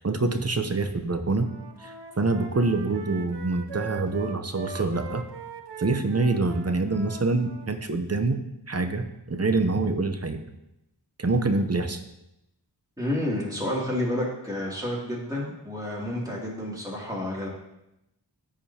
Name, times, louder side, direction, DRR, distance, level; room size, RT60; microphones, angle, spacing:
voice 1, 0.0-1.5 1.8-5.2 5.8-8.4 8.7-10.5 11.2-12.0, right 3 dB, 35° right, 7 dB, 0.8 m, -26 dB
Wind instrument woodwind instrument, 1.4-7.7, right 5 dB, 70° right, 0.8 m, -41 dB
voice 2, 13.0-17.5, left 1 dB, 10° right, -5 dB, 2.7 m, -30 dB
14.0 x 4.9 x 2.9 m, 0.87 s
wide cardioid pair, 45°, 43 cm